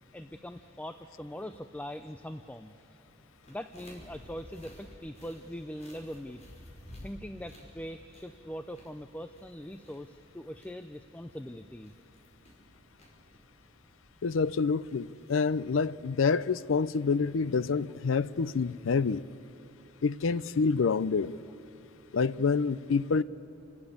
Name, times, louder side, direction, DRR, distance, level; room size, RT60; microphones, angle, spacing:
voice 1, 0.1-3.0 3.5-6.4 7.0-11.9, equal, 10° left, 0.5 m, -42 dB
sound 1, 3.4-15.6, left 1 dB, 35° left, 5.1 m, -54 dB
voice 2, 14.2-19.2 20.0-21.4 22.1-23.2, left 5 dB, 75° left, 0.5 m, -27 dB
29.5 x 13.0 x 8.6 m
head